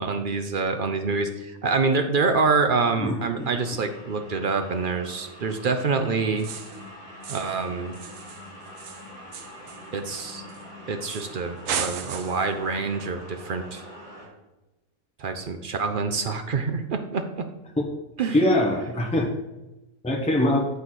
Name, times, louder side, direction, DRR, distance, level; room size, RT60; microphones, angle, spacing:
voice 1, 0.0-6.5 7.3-8.0 9.9-10.4 10.9-13.8 15.2-17.5 18.2-18.5, right 4 dB, 55° right, 6 dB, 0.6 m, -26 dB
voice 2, 3.0-3.5 17.8-17.9 18.3-19.3 20.0-20.7, left 1 dB, 5° left, 1 dB, 0.8 m, -23 dB
sound 1, 3.4-14.3, equal, 35° right, 2.7 m, -44 dB
sound 2, 6.4-6.8 7.2-7.6 7.9-10.6 11.1-11.4 11.7-12.5, right 7 dB, 75° right, 1.0 m, -35 dB
8.1 x 4.0 x 6.1 m, 1.0 s
omnidirectional pair, 1.5 m